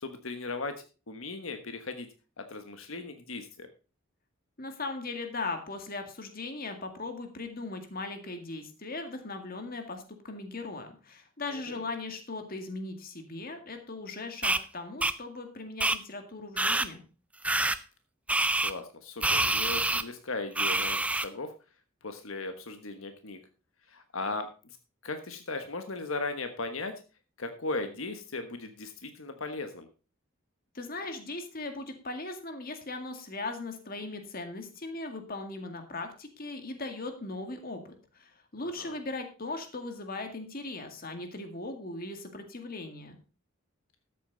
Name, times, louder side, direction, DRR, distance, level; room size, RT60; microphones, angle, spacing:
voice 1, 0.0-2.1 2.4-3.7 11.5-11.8 18.6-21.5 22.0-23.4 23.9-24.5 25.0-26.9 27.4-29.9 38.6-38.9, left 3 dB, 85° left, 7 dB, 1.3 m, -37 dB
voice 2, 4.6-17.0 30.7-43.2, left 3 dB, 45° left, 6 dB, 2.0 m, -38 dB
sound 1, 14.4-14.6 15.0-15.1 15.8-16.0 16.6-16.9 17.4-17.8 18.3-18.7 19.2-20.0 20.6-21.3, right 2 dB, 5° right, 0.4 m, -26 dB
13.0 x 8.4 x 3.9 m, 0.33 s
head